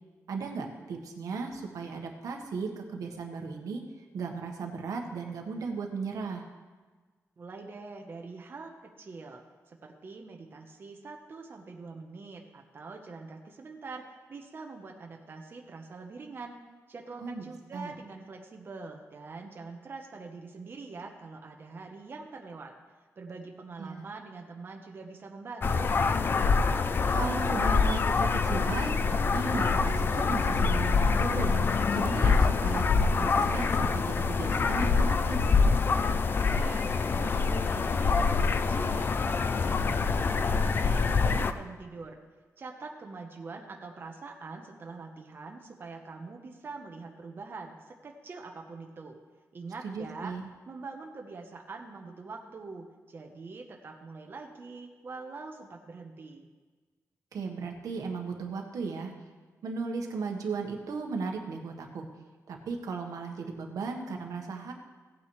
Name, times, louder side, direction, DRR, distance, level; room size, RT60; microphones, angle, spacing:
voice 1, 0.3-3.8 4.1-6.4 17.2-18.0 23.8-24.0 27.1-31.6 31.9-35.4 49.8-50.5 57.3-59.1 59.6-62.1 62.5-64.7, right 4 dB, 85° right, 2 dB, 1.4 m, -36 dB
voice 2, 7.4-16.6 16.9-22.7 23.2-26.1 36.3-40.0 40.3-42.2 42.6-49.2 49.5-50.3 50.7-56.5, right 4 dB, 40° right, 1 dB, 1.0 m, -44 dB
sound 1, 25.6-41.5, left 4 dB, 40° left, 0.5 m, -25 dB
17.0 x 8.8 x 3.2 m, 1.4 s
wide cardioid pair, 170°, 6 cm